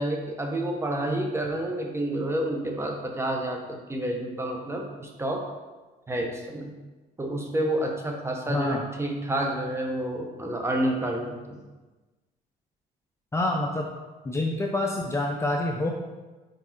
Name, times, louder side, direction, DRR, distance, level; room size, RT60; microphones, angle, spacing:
voice 1, 0.0-5.4 6.1-6.7 7.2-11.6, right 1 dB, 15° right, 2 dB, 0.9 m, -29 dB
voice 2, 8.5-8.8 13.3-13.9 14.2-15.9, left 2 dB, 15° left, 1 dB, 0.6 m, -27 dB
4.7 x 4.6 x 4.5 m, 1.2 s
cardioid pair, 110°, 17 cm